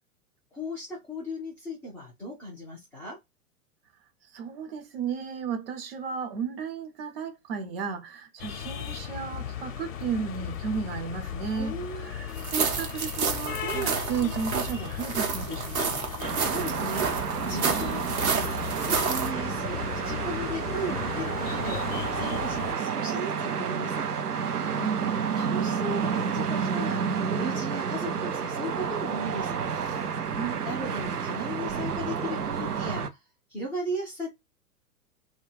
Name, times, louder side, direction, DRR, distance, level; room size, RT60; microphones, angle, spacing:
voice 1, 0.5-3.2 11.5-12.1 13.7-14.0 16.4-18.6 18.8-21.8 22.1-24.1 25.4-27.0 27.3-29.6 30.6-33.2 33.5-34.3, equal, 5° left, 0.4 m, -36 dB
voice 2, 4.2-16.1 24.7-25.3 30.3-31.0, right 6 dB, 40° right, 0.7 m, -34 dB
sound 1, 8.4-22.7, left 9 dB, 60° left, 0.6 m, -36 dB
sound 2, 12.4-19.3, right 5 dB, 65° right, 0.9 m, -30 dB
sound 3, 16.2-33.1, right 6 dB, 85° right, 0.6 m, -30 dB
2.3 x 2.2 x 3.2 m
figure-of-eight pair, 105°, 45 cm